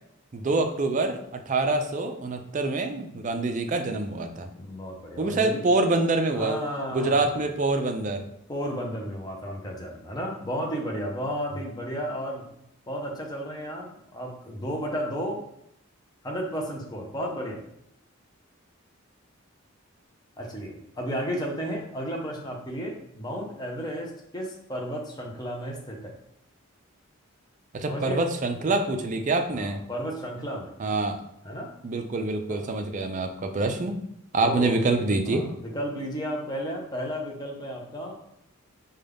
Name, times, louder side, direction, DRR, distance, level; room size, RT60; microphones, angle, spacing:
voice 1, 0.3-4.5 5.2-6.6 6.9-8.2 27.7-29.8 30.8-31.2 31.8-34.0 34.3-35.5, right 2 dB, 35° right, 6 dB, 0.4 m, -26 dB
voice 2, 4.5-5.6 6.3-7.4 8.5-12.5 12.9-15.4 16.2-17.6 20.4-26.1 27.9-28.2 29.5-30.7 31.4-31.7 32.5-32.7 34.4-34.8 35.3-38.2, equal, 20° left, 0 dB, 0.6 m, -33 dB
5.1 x 2.3 x 3.4 m, 0.77 s
head